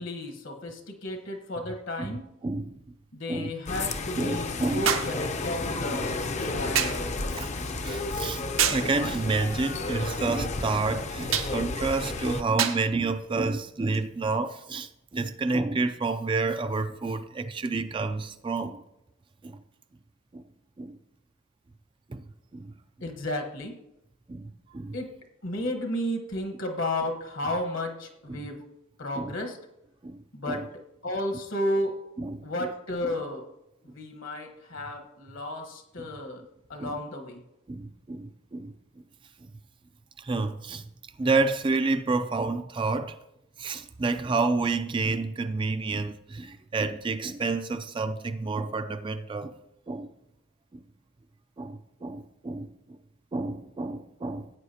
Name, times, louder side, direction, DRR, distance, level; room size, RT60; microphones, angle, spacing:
voice 1, 0.0-2.2 3.1-6.2 6.5-6.9 23.0-23.7 24.9-25.1 25.4-28.6 29.0-29.6 30.3-30.6 31.0-32.0 32.4-33.4 33.8-36.4 36.7-37.4, left 1 dB, 65° left, 1.2 m, -33 dB
sound 1, 1.1-1.2 4.9-5.2 6.8-7.1 8.6-8.9 11.3-11.6 12.6-12.9 13.9-14.1, right 8 dB, 75° right, 1.0 m, -26 dB
voice 2, 2.4-2.8 3.3-3.5 4.2-5.0 5.9-6.0 6.4-6.6 7.3-7.5 7.8-18.8 19.4-19.6 20.3-20.4 20.8-21.0 22.1-22.2 22.5-22.7 24.3-25.0 28.3-28.5 29.1-29.3 30.0-30.2 30.5-30.7 32.2-32.4 36.0-36.1 36.8-36.9 37.7-38.7 40.2-40.8 41.2-43.2 43.6-49.5 49.9-50.1 51.6-52.7 53.3-54.5, right 3 dB, 25° right, 0.3 m, -29 dB
sound 2, 3.7-12.4, left 3 dB, 35° left, 0.6 m, -32 dB
15.5 x 8.8 x 2.8 m
head